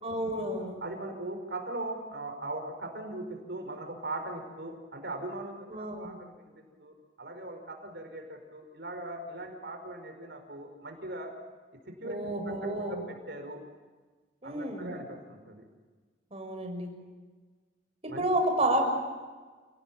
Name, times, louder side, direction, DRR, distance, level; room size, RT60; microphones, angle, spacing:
voice 1, 0.0-0.8 5.7-6.2 12.0-13.0 14.4-14.9 16.3-16.9 18.2-18.8, right 1 dB, 35° right, 3 dB, 6.1 m, -30 dB
voice 2, 0.8-6.5 6.8-11.3 12.0-12.6 12.9-13.6 14.4-15.7 18.1-18.3, right 2 dB, 65° right, 5 dB, 5.1 m, -40 dB
29.0 x 18.5 x 9.1 m, 1.4 s
head